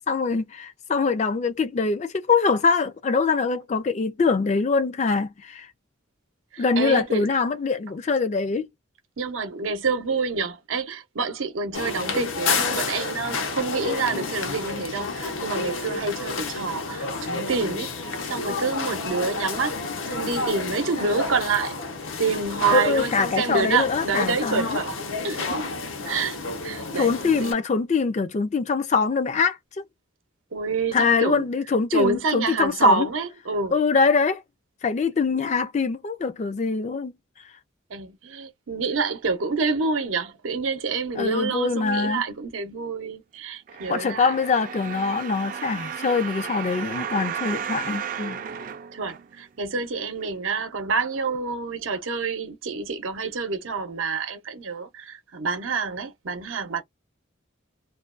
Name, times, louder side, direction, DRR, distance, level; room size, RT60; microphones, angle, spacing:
voice 1, 0.1-5.7 6.6-8.7 22.7-24.8 26.9-29.6 30.9-33.1 33.7-34.4 34.8-37.1 41.2-42.2 43.9-48.4, left 4 dB, 35° left, 0.3 m, -23 dB
voice 2, 6.5-7.3 9.2-17.9 18.3-19.8 20.1-21.8 22.2-24.9 25.2-25.7 26.1-26.4 26.6-27.6 30.5-31.5 31.9-33.8 37.9-44.4 48.9-56.8, right 4 dB, 85° right, 0.6 m, -27 dB
sound 1, 11.7-27.5, left 4 dB, 85° left, 0.7 m, -30 dB
sound 2, 43.7-49.6 50.2-50.3, right 7 dB, 40° right, 0.3 m, -34 dB
2.4 x 2.2 x 2.4 m
head